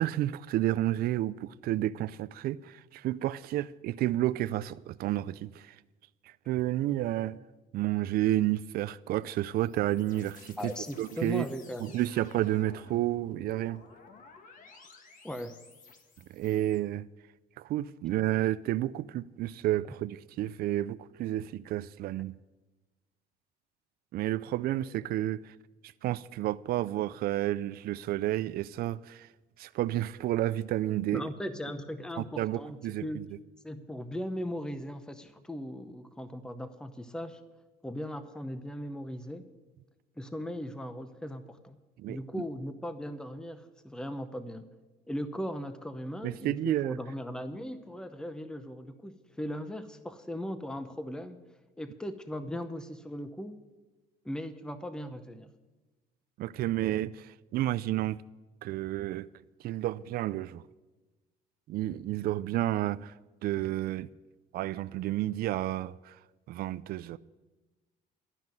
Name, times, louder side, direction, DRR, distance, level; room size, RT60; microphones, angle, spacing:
voice 1, 0.0-5.7 6.5-7.4 7.7-11.5 11.8-13.8 16.3-17.1 17.6-22.4 24.1-25.5 26.0-29.3 29.6-31.3 32.4-33.2 42.0-42.4 46.2-47.0 56.4-58.2 58.6-59.3 59.6-60.6 61.7-63.1 63.4-64.1 64.5-66.1 66.5-67.2, right 14 dB, 65° right, 0.4 m, -31 dB
sound 1, 9.2-16.8, left 4 dB, 50° left, 1.5 m, -55 dB
voice 2, 10.6-12.1 15.2-15.5 31.1-33.3 33.6-37.4 37.8-39.4 40.2-41.8 42.1-44.7 45.1-51.4 51.8-53.6 54.2-55.5, equal, 5° left, 0.7 m, -38 dB
12.5 x 5.8 x 9.2 m
cardioid pair, 110°, 17 cm